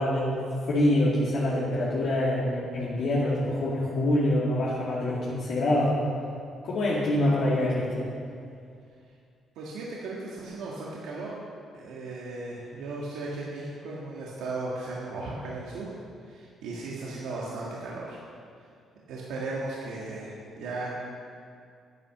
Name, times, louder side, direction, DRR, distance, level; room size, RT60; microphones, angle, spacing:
voice 1, 0.0-5.9 6.6-8.1, left 1 dB, 70° left, -7 dB, 2.2 m, -25 dB
voice 2, 9.6-11.4 11.7-15.9 16.2-18.2 19.1-20.9, right 2 dB, 90° right, -5 dB, 1.7 m, -36 dB
11.0 x 8.9 x 6.6 m, 2.3 s
cardioid pair, 90°, 0 cm